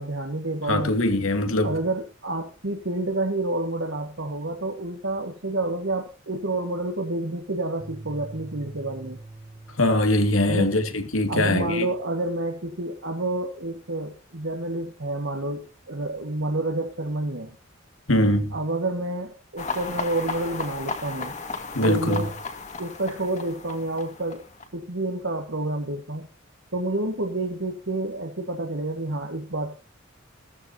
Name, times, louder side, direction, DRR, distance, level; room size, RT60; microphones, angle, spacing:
voice 1, 0.0-1.0 1.6-9.2 10.5-10.7 11.3-17.6 18.5-21.3 21.8-22.3 22.8-24.4 24.7-26.3 26.7-29.7, right 2 dB, 65° right, 1.9 m, -29 dB
voice 2, 0.7-1.8 9.8-11.9 18.1-18.5 21.7-22.3, left 1 dB, 85° left, 2.6 m, -22 dB
sound 1, 7.8-10.3, right 2 dB, 20° right, 1.2 m, -42 dB
sound 2, 19.6-24.7, left 4 dB, 35° left, 2.2 m, -34 dB
16.0 x 14.5 x 2.9 m
head